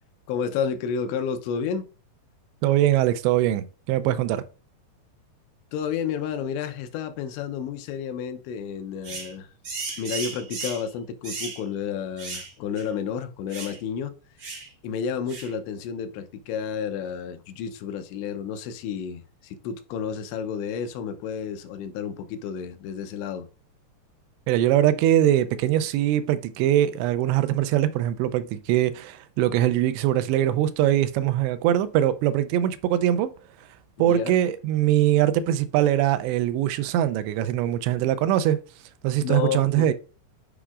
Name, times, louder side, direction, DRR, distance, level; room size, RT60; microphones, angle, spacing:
voice 1, 0.3-1.9 5.7-9.5 10.0-14.1 14.8-23.5 34.0-34.3 39.2-39.9, left 7 dB, 85° left, 2.9 m, -31 dB
voice 2, 2.6-4.4 24.5-33.3 34.0-38.6 39.0-39.9, right 12 dB, 85° right, 2.7 m, -22 dB
sound 1, 9.0-9.3 9.6-10.9 11.2-11.6 12.2-12.5 12.8-12.9 13.5-13.8 14.4-14.7 15.3-15.5, right 4 dB, 65° right, 1.1 m, -35 dB
10.0 x 4.9 x 2.4 m
omnidirectional pair, 5.0 m